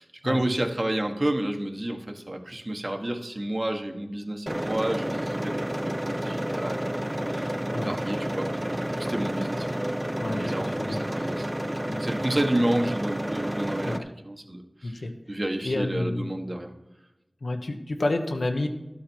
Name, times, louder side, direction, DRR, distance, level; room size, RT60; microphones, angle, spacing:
voice 1, 0.0-7.5 7.8-9.7 10.2-11.5 12.0-16.7, right 1 dB, 45° right, 3 dB, 1.4 m, -30 dB
sound 1, 4.5-14.0, right 1 dB, 15° right, 0.7 m, -30 dB
voice 2, 10.2-11.0 11.9-12.0 13.8-14.0 14.8-15.1 15.6-16.3 17.4-18.7, left 2 dB, 85° left, 4 dB, 1.1 m, -29 dB
12.5 x 8.5 x 4.6 m, 0.99 s
wide cardioid pair, 50°, 0 cm